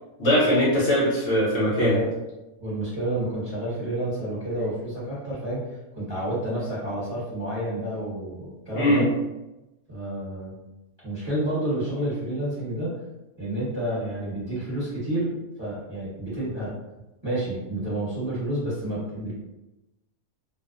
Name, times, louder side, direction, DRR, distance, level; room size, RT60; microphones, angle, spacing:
voice 1, 0.2-2.0 8.7-9.0, equal, 60° left, -8 dB, 1.0 m, -21 dB
voice 2, 2.6-5.6 5.9-9.1 9.9-10.6 11.0-12.9 13.4-16.7 17.2-19.3, right 1 dB, 20° right, -11 dB, 1.0 m, -29 dB
2.6 x 2.0 x 2.3 m, 0.98 s
omnidirectional pair, 1.5 m